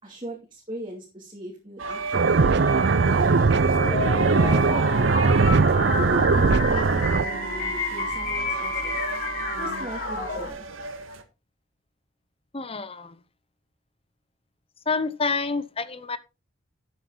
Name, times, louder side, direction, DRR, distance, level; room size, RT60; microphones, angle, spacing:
voice 1, 0.0-3.8 4.6-5.2 5.8-9.0 9.6-10.7, equal, 25° right, -2 dB, 2.7 m, -38 dB
sound 1, 1.8-11.2, right 4 dB, 80° right, 1.7 m, -31 dB
sound 2, 2.1-7.2, right 4 dB, 55° right, 0.5 m, -20 dB
sound 3, 3.8-10.5, left 4 dB, 45° left, 5.5 m, -31 dB
voice 2, 12.5-13.2 14.9-16.2, left 4 dB, 30° left, 15 dB, 0.8 m, -28 dB
12.5 x 7.9 x 4.0 m, 0.27 s
head